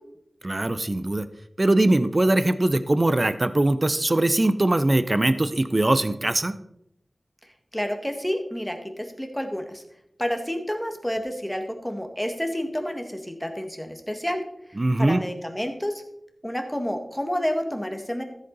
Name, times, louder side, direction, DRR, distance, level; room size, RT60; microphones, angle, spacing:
voice 1, 0.4-1.3 1.6-6.6 14.8-15.2, right 2 dB, 40° right, 13 dB, 0.6 m, -21 dB
voice 2, 7.7-9.8 10.2-14.4 14.7-16.0 16.4-18.2, equal, 5° left, 5 dB, 1.9 m, -29 dB
13.5 x 8.1 x 4.1 m, 0.77 s
wide cardioid pair, 60°, 0 cm